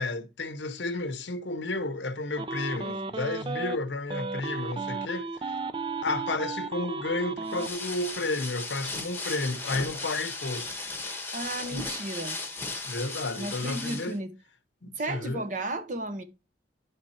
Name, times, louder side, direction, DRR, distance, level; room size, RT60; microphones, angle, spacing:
voice 1, 0.0-5.3 6.0-10.7 11.7-11.8 12.8-14.2 14.8-15.4, left 2 dB, 75° left, 0.8 m, -32 dB
sound 1, 2.4-3.8 4.1-7.7, right 4 dB, 25° right, 0.4 m, -34 dB
sound 2, 7.5-14.2, left 3 dB, 10° left, 1.1 m, -36 dB
voice 2, 11.3-12.4 13.4-14.3 15.0-16.2, right 1 dB, 45° right, 1.0 m, -34 dB
10.0 x 3.5 x 4.2 m
head